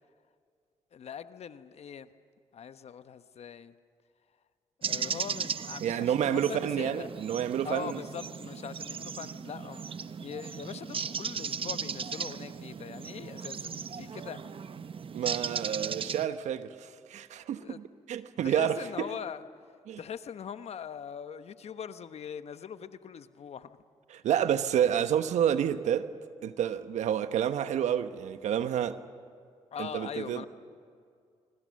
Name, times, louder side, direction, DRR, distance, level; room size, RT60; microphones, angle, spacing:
voice 1, 0.9-2.1 2.5-3.7 4.8-7.1 7.6-14.4 17.6-17.8 18.4-19.5 20.0-23.8 29.7-30.5, left 8 dB, 60° left, 1.1 m, -41 dB
sound 1, 4.8-16.3, right 6 dB, 50° right, 0.9 m, -37 dB
voice 2, 5.8-8.0 15.1-19.1 19.9-20.0 24.1-26.1 26.4-29.0 29.8-30.5, right 9 dB, 75° right, 1.1 m, -29 dB
26.5 x 25.0 x 6.5 m
supercardioid pair, 55°, 12 cm